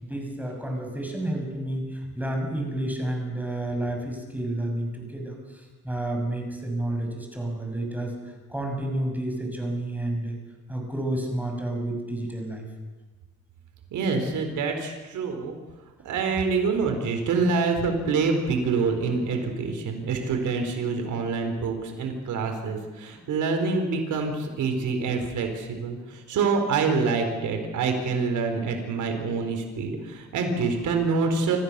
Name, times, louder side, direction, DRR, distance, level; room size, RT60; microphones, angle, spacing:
voice 1, 0.0-8.1 8.5-10.4 10.7-12.6, right 1 dB, 5° right, 2 dB, 6.5 m, -30 dB
voice 2, 13.9-15.5 16.0-31.6, right 4 dB, 75° right, 4 dB, 4.4 m, -26 dB
26.0 x 15.0 x 6.9 m, 1.2 s
cardioid pair, 90°, 30 cm